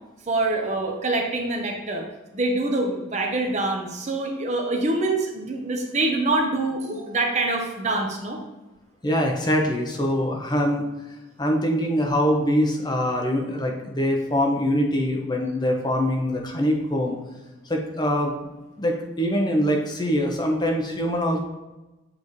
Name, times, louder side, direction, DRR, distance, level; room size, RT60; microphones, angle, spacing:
voice 1, 0.3-2.0 2.3-8.4, right 2 dB, 35° right, 2 dB, 0.7 m, -25 dB
voice 2, 9.0-10.8 11.4-17.2 17.7-18.5 18.8-21.4, equal, 20° left, 1 dB, 0.7 m, -23 dB
7.5 x 4.0 x 3.1 m, 1.1 s
head